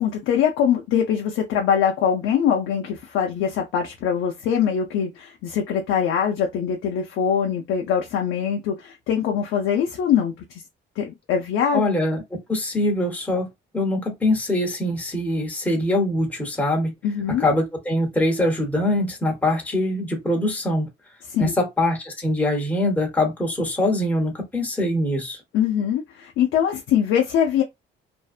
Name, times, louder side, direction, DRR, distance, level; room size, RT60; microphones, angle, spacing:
voice 1, 0.0-10.6 11.0-11.9 17.0-17.5 21.3-21.5 25.5-27.6, left 8 dB, 85° left, 0.5 m, -23 dB
voice 2, 11.7-12.2 12.5-13.5 13.7-16.9 17.4-20.9 21.4-25.4, left 1 dB, 10° left, 0.9 m, -23 dB
2.6 x 2.0 x 2.4 m
cardioid pair, 90°, 20 cm